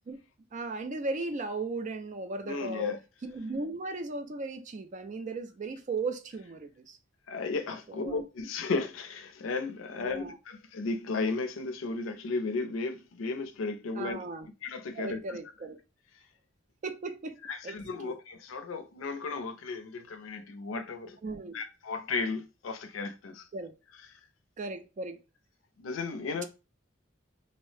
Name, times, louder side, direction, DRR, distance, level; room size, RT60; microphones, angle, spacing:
voice 1, 0.5-2.9 3.2-7.0 7.9-8.2 10.0-10.4 14.0-14.5 14.9-15.8 16.8-17.4 17.6-17.8 18.0-18.1 21.2-21.6 23.5-23.7 24.6-25.2, right 3 dB, 40° right, 0.4 m, -36 dB
voice 2, 2.4-3.0 7.3-14.2 14.6-15.4 17.4-21.2 21.5-23.5 25.8-26.4, left 4 dB, 80° left, 0.5 m, -34 dB
2.6 x 2.0 x 3.1 m
head